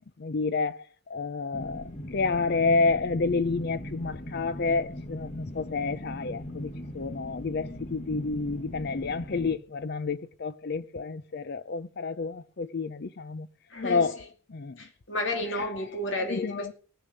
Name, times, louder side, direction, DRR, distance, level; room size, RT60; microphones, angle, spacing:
voice 1, 0.2-13.5 13.8-14.2 14.5-14.8 16.2-16.7, left 4 dB, 55° left, 0.6 m, -29 dB
sound 1, 1.5-9.5, left 1 dB, 35° left, 1.5 m, -39 dB
voice 2, 13.7-14.1 14.8-16.7, left 1 dB, 70° left, 2.5 m, -32 dB
19.5 x 6.7 x 6.5 m
head